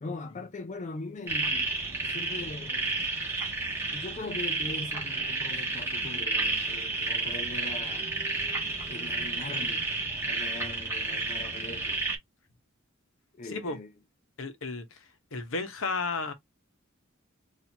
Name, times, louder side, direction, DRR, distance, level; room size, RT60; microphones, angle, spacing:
voice 1, 0.0-3.0 3.9-8.1 8.9-9.9 10.3-12.0 13.4-13.9, left 3 dB, 35° left, 0.4 m, -41 dB
sound 1, 1.3-12.2, right 3 dB, 10° right, 1.2 m, -31 dB
voice 2, 14.4-14.8 15.3-16.3, left 3 dB, 70° left, 1.0 m, -32 dB
4.4 x 2.7 x 2.8 m
head